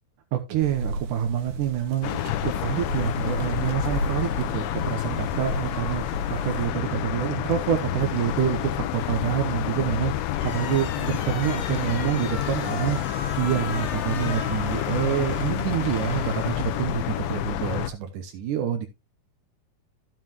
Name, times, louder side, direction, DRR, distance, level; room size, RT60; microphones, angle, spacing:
voice 1, 0.3-18.9, right 10 dB, 70° right, 2.2 m, -27 dB
sound 1, 0.6-6.7, equal, 90° right, 3.4 m, -33 dB
sound 2, 2.0-17.9, left 12 dB, 75° left, 2.4 m, -29 dB
sound 3, 10.3-17.3, left 5 dB, 50° left, 1.9 m, -37 dB
12.5 x 7.7 x 3.0 m
omnidirectional pair, 4.5 m